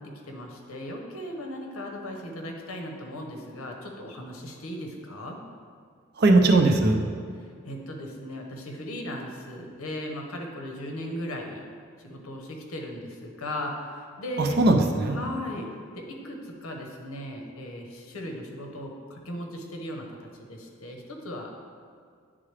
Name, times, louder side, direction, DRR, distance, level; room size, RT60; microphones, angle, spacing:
voice 1, 0.0-5.4 7.7-11.6 12.0-14.6 15.1-15.7 15.9-21.6, left 1 dB, 90° left, 2 dB, 0.9 m, -37 dB
voice 2, 6.2-7.0 14.4-15.2, right 2 dB, 50° right, 5 dB, 0.5 m, -19 dB
9.5 x 3.7 x 3.3 m, 2.1 s
head